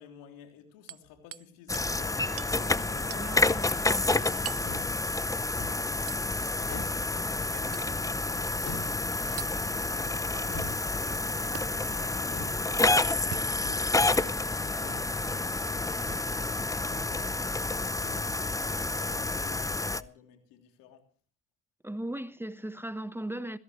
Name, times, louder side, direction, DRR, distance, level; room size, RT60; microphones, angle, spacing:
voice 1, 0.0-5.3 5.6-16.4 16.8-21.1, left 8 dB, 85° left, 3.3 m, -53 dB
Hammer, 0.9-1.5 1.7-1.9 2.4-2.6 3.1-3.3 4.5-4.7 6.1-6.3 7.7-7.9 9.4-9.6 11.6-11.7 13.2-13.9 14.7-14.8 16.1-16.3 17.2-17.4 18.9-19.0, right 11 dB, 45° right, 0.7 m, -42 dB
sound 1, 1.7-20.0, left 2 dB, 10° left, 0.7 m, -29 dB
voice 2, 3.2-4.2 21.8-23.6, right 1 dB, 5° right, 1.1 m, -37 dB
sound 2, 4.6-5.0 5.5-5.9 6.6-7.1 8.6-9.0 10.5-10.9 12.2-12.6 13.5-14.0 14.7-15.1 16.0-16.4 16.7-17.2 17.9-18.3 19.0-19.4, left 3 dB, 50° left, 6.6 m, -43 dB
20.5 x 16.0 x 3.2 m
supercardioid pair, 65°, 34 cm